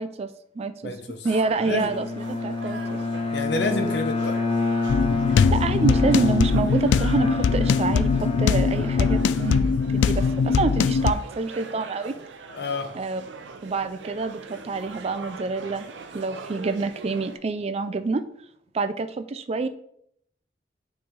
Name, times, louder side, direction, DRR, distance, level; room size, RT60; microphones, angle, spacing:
voice 1, 0.0-0.9 1.2-3.0 5.3-12.2 12.9-13.2 13.6-18.2 18.7-19.7, right 3 dB, 35° right, 11 dB, 0.4 m, -27 dB
voice 2, 0.8-1.3 1.6-1.9 3.3-4.4 12.5-12.9, left 3 dB, 65° left, 6 dB, 0.9 m, -28 dB
sound 1, 1.2-17.4, right 4 dB, 90° right, 0.6 m, -42 dB
Bowed string instrument, 1.6-10.0, left 3 dB, 30° left, 0.6 m, -28 dB
sound 2, 4.9-11.1, left 5 dB, 85° left, 0.3 m, -21 dB
9.5 x 3.2 x 3.7 m, 0.71 s
head